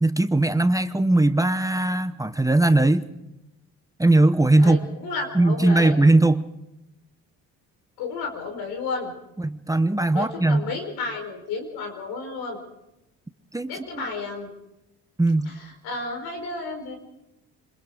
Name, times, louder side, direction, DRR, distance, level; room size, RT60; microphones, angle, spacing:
voice 1, 0.0-3.0 4.0-4.8 5.3-6.5 9.4-10.6 13.5-13.7 15.2-15.5, right 2 dB, 10° right, 11 dB, 0.9 m, -19 dB
voice 2, 4.6-5.9 8.0-9.1 10.1-12.6 13.6-14.5 15.4-16.9, left 4 dB, 85° left, 5 dB, 4.9 m, -32 dB
26.0 x 21.0 x 5.0 m, 0.91 s
supercardioid pair, 75°, 37 cm